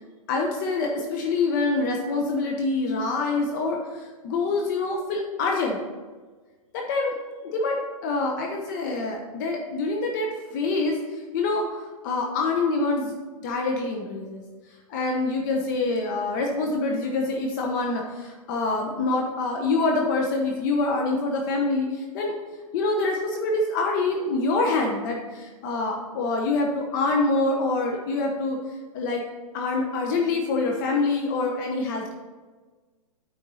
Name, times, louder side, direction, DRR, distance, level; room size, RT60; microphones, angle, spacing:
voice 1, 0.3-5.8 6.7-7.1 7.4-11.0 11.3-14.4 14.9-22.3 22.7-28.6 28.9-29.2 29.5-32.1, left 3 dB, 35° left, 1 dB, 1.0 m, -26 dB
8.9 x 4.4 x 5.6 m, 1.3 s
hypercardioid pair, 160°, 18 cm